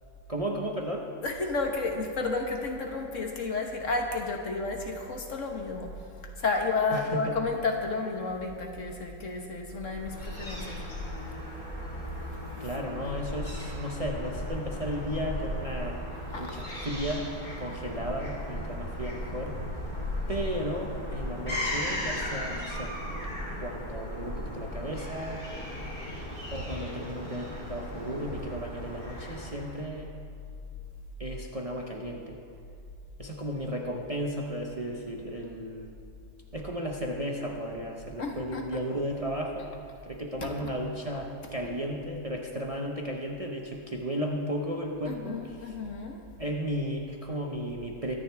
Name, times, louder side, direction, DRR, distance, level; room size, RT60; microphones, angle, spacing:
voice 1, 0.3-1.1 6.9-7.4 12.6-17.3 17.6-19.6 20.3-23.0 23.6-25.4 26.5-30.1 31.2-32.4 33.2-35.9 36.5-39.7 40.0-45.8 46.4-48.1, equal, 30° right, 0 dB, 0.9 m, -34 dB
voice 2, 1.2-5.9 6.4-10.8 16.3-16.4 38.2-38.6 45.0-46.2, left 3 dB, 60° left, 2 dB, 1.6 m, -31 dB
Fowl / Gull seagull, 10.0-29.8, left 1 dB, 35° left, 3.8 m, -36 dB
23.5 x 10.0 x 3.5 m, 2.5 s
omnidirectional pair, 1.5 m